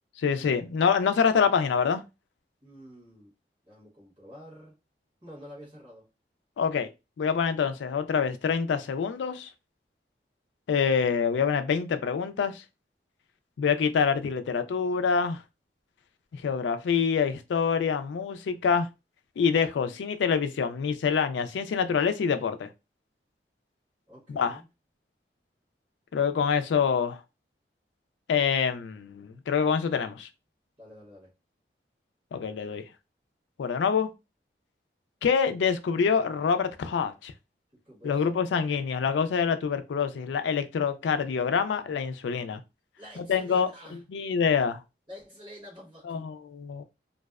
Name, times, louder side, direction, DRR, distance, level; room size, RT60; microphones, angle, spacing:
voice 1, 0.2-2.0 6.6-6.9 7.2-9.5 10.7-12.6 13.6-15.4 16.3-18.9 19.4-22.7 24.3-24.6 26.1-27.2 28.3-30.3 32.3-32.8 33.6-34.1 35.2-37.3 38.0-42.6 43.2-44.8 46.0-46.8, left 6 dB, 85° left, 0.3 m, -26 dB
voice 2, 2.6-3.3 3.6-4.8 5.2-6.1 24.1-24.6 30.8-31.3 37.8-38.7 43.0-44.0 45.1-46.3, equal, 25° right, 1.2 m, -48 dB
2.6 x 2.1 x 2.3 m
head